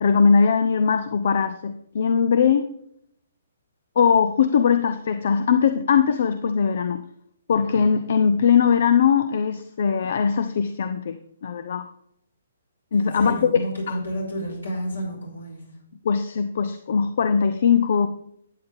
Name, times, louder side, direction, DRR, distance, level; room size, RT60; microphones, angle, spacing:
voice 1, 0.0-2.7 4.0-7.0 7.5-11.2 11.4-11.9 12.9-14.0 16.0-18.1, left 6 dB, 50° left, 10 dB, 0.6 m, -20 dB
voice 2, 12.9-15.7, equal, 75° left, -1 dB, 4.9 m, -30 dB
12.5 x 9.1 x 3.5 m, 0.72 s
figure-of-eight pair, 125°, 0 cm